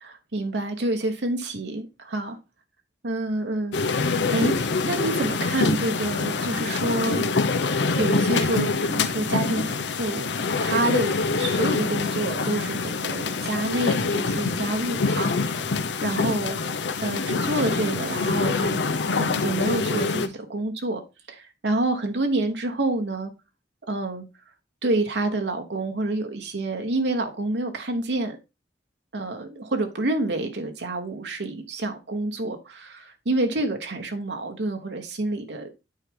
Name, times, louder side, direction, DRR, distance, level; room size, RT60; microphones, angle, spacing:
voice 1, 0.3-2.4 3.0-10.3 10.6-18.8 19.1-21.0 21.3-23.3 23.9-24.3 24.8-28.4 29.1-35.7, right 2 dB, 75° right, 1.1 m, -28 dB
sound 1, 3.7-20.3, left 4 dB, 80° left, 0.7 m, -25 dB
8.9 x 4.8 x 3.7 m
head